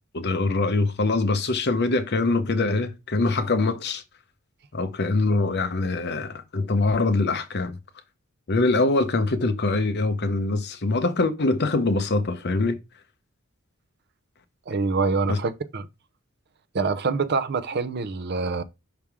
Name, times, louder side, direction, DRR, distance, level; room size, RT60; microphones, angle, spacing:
voice 1, 0.1-4.0 4.7-7.8 8.5-12.8 15.3-15.4, left 3 dB, 50° left, 0.8 m, -23 dB
voice 2, 14.7-15.9 16.7-18.6, right 4 dB, 45° right, 0.6 m, -25 dB
5.8 x 3.5 x 4.7 m
head